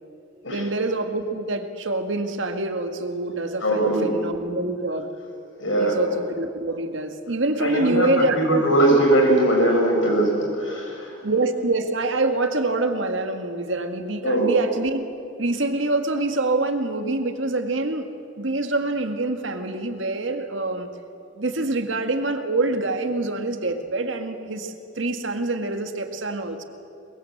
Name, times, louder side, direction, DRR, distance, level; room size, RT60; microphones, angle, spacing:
voice 1, 0.5-5.1 5.8-8.7 11.2-15.0 15.4-18.1 18.4-20.9 21.4-26.6, right 2 dB, 80° right, 6 dB, 1.8 m, -25 dB
voice 2, 3.6-4.1 5.6-6.0 7.6-11.1 14.2-14.5, right 1 dB, 80° left, 1 dB, 6.2 m, -20 dB
22.5 x 21.5 x 7.8 m, 2.6 s
head